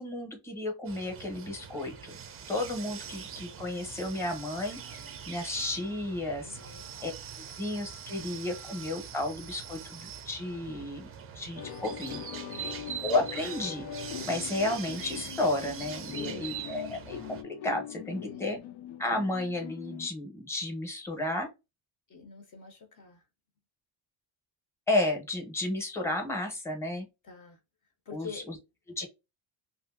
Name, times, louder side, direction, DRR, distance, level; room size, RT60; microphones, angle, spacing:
voice 1, 0.0-2.2 2.5-4.8 5.3-6.5 7.0-7.1 7.6-11.1 11.3-12.2 13.0-13.9 14.3-18.6 19.0-21.5 24.9-27.1 28.1-28.6 29.0-29.1, left 2 dB, 5° left, 0.8 m, -32 dB
sound 1, 0.8-17.4, right 8 dB, 30° right, 0.4 m, -43 dB
voice 2, 2.5-3.6 6.4-6.9 12.1-13.0 16.1-16.6 18.2-18.6 22.1-23.3 27.2-27.6 28.1-28.5 29.0-29.1, left 5 dB, 40° left, 0.6 m, -47 dB
sound 2, 11.6-20.1, left 10 dB, 85° left, 0.6 m, -42 dB
2.7 x 2.6 x 2.4 m
cardioid pair, 150°, 46 cm